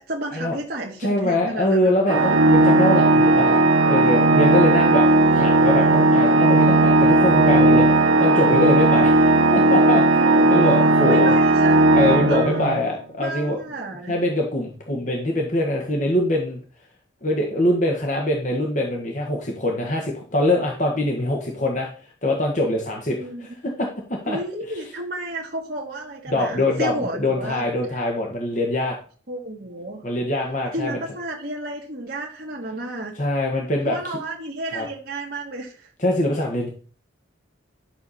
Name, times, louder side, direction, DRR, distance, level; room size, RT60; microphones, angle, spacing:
voice 1, 0.0-1.9 11.1-11.9 12.3-12.8 13.2-14.1 23.2-23.5 24.3-27.6 27.9-28.0 29.3-30.0 30.7-33.2 33.8-35.9, right 1 dB, 50° right, -2 dB, 1.6 m, -32 dB
voice 2, 1.0-5.1 5.3-11.3 11.9-13.6 14.1-16.6 17.2-21.9 22.2-24.4 26.3-29.0 30.0-31.0 33.2-34.2 34.7-34.9 36.0-36.7, left 1 dB, 40° left, 0 dB, 1.6 m, -23 dB
Organ, 2.1-12.9, right 2 dB, 75° right, 1.0 m, -16 dB
12.0 x 6.8 x 4.3 m, 0.41 s
head